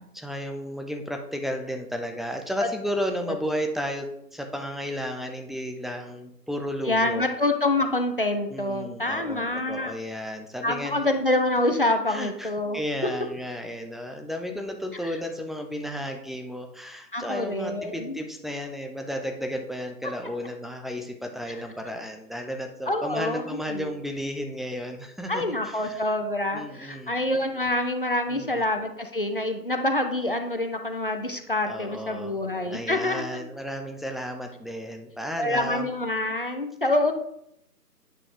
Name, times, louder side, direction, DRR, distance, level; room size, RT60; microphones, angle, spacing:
voice 1, 0.1-7.3 8.5-11.0 12.1-26.0 26.5-27.1 28.3-28.6 31.6-32.4 32.7-35.9, equal, ahead, 4 dB, 0.4 m, -33 dB
voice 2, 6.9-9.9 10.6-12.8 15.0-15.1 17.1-18.2 22.9-23.9 25.3-33.4 35.4-37.1, left 1 dB, 35° left, 5 dB, 0.7 m, -26 dB
9.3 x 5.5 x 3.3 m, 0.77 s
figure-of-eight pair, 165°, 49 cm